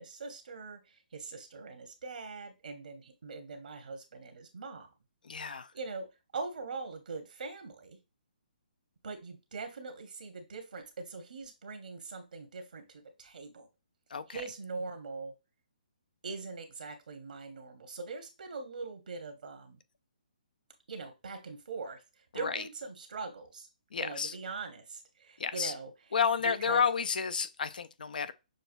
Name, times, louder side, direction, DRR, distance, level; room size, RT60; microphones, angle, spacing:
voice 1, 0.0-4.9 5.4-6.1 6.3-8.0 9.0-13.7 14.3-15.3 16.2-19.8 20.9-22.0 22.3-23.7 23.9-25.9 26.4-26.8, right 4 dB, 75° right, 1.0 m, -42 dB
voice 2, 5.2-5.7 14.1-14.4 22.3-22.6 23.9-24.4 25.4-25.7 26.1-28.3, left 6 dB, 75° left, 0.5 m, -31 dB
6.4 x 2.3 x 2.6 m
hypercardioid pair, 155°, 5 cm